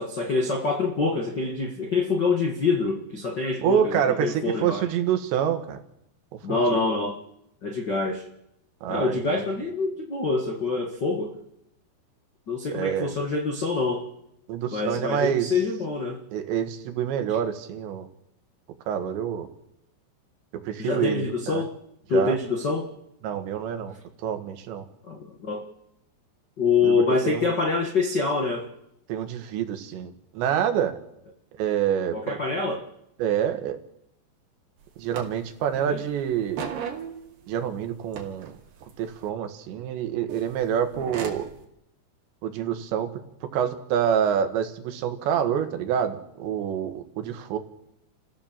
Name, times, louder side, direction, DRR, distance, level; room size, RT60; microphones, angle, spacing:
voice 1, 0.0-4.9 6.4-7.2 7.6-8.2 8.9-11.4 12.5-14.1 14.7-16.2 17.3-17.4 20.8-21.8 22.1-22.9 25.1-25.7 26.6-28.7 32.1-32.9 35.7-36.0, left 4 dB, 75° left, 2 dB, 0.9 m, -26 dB
voice 2, 3.6-5.8 6.5-6.8 8.8-9.2 12.7-13.1 14.5-15.5 16.3-18.1 18.9-19.5 20.7-21.6 22.1-22.4 23.2-23.9 24.2-24.9 26.8-27.5 29.1-30.9 31.6-32.4 33.2-33.8 35.0-36.6 37.5-38.5 39.0-41.5 42.4-43.1 43.5-47.6, right 9 dB, 85° right, 7 dB, 3.8 m, -27 dB
sound 1, 34.8-34.9 35.1-35.8 36.1-37.7 38.1-39.3 40.3-41.5, right 6 dB, 70° right, 4.4 m, -37 dB
29.0 x 15.5 x 7.4 m, 0.83 s
omnidirectional pair, 5.0 m